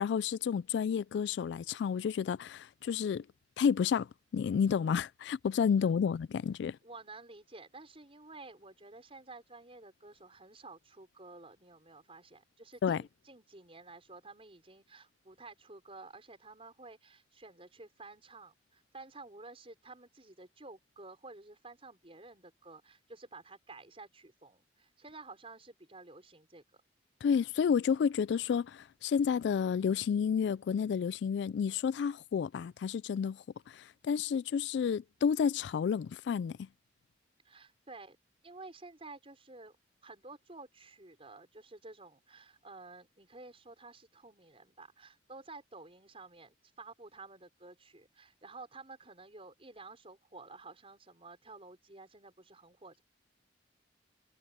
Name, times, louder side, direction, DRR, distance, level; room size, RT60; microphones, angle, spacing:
voice 1, 0.0-3.2 3.6-4.1 4.3-6.8 12.8-13.0 27.2-36.6, left 7 dB, 75° left, 0.3 m, -30 dB
voice 2, 6.8-26.8 37.4-38.2 38.4-39.7 40.0-53.0, right 3 dB, 35° right, 5.8 m, -52 dB
head